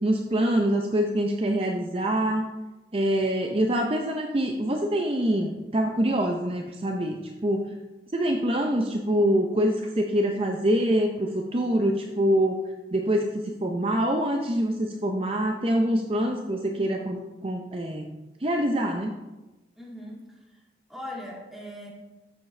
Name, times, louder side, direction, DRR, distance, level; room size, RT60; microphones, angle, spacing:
voice 1, 0.0-2.5 2.9-7.7 8.1-12.6 12.9-19.1, right 1 dB, 30° right, 3 dB, 0.6 m, -25 dB
voice 2, 19.8-20.4 20.9-21.9, left 1 dB, ahead, -4 dB, 2.0 m, -39 dB
13.0 x 7.4 x 3.3 m, 1.1 s
head